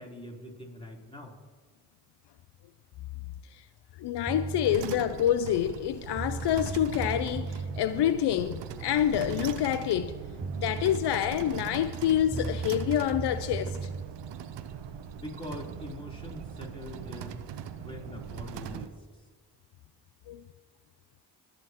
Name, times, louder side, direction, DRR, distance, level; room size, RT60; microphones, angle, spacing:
voice 1, 0.0-1.3 15.1-17.4 17.8-18.9, left 1 dB, 15° left, 3.6 m, -43 dB
voice 2, 4.0-10.1 10.6-13.8 20.3-20.4, left 11 dB, 75° left, 0.5 m, -27 dB
sound 1, 4.3-4.8 5.8-5.9 6.2-7.8 10.1-10.2 10.4-11.1 12.3-14.1, right 3 dB, 10° right, 0.5 m, -35 dB
sound 2, 4.6-18.9, right 9 dB, 85° right, 0.7 m, -40 dB
24.0 x 8.1 x 3.0 m
supercardioid pair, 45°, 41 cm